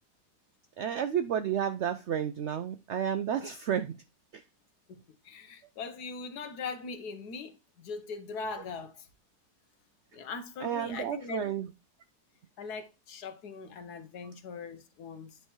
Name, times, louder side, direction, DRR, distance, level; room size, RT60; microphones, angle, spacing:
voice 1, 0.8-4.0 4.3-4.4 10.6-11.7, right 9 dB, 75° right, 0.6 m, -31 dB
voice 2, 4.9-9.1 10.1-11.5 12.6-15.4, left 4 dB, 75° left, 1.5 m, -41 dB
9.4 x 3.4 x 4.3 m
omnidirectional pair, 1.7 m